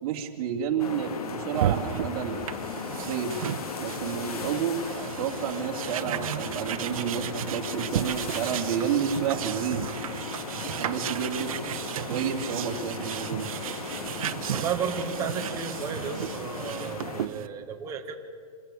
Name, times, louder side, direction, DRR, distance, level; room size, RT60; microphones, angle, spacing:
voice 1, 0.0-2.4 2.9-3.5 3.8-9.9 10.5-11.8 12.1-13.5, right 8 dB, 40° right, -1 dB, 2.6 m, -30 dB
sound 1, 0.8-17.3, left 5 dB, 80° left, 2.2 m, -37 dB
sound 2, 1.5-17.5, right 10 dB, 70° right, 0.9 m, -34 dB
voice 2, 14.5-18.2, right 7 dB, 20° right, 2 dB, 1.3 m, -33 dB
26.0 x 15.5 x 8.5 m, 2.1 s
hypercardioid pair, 150°, 19 cm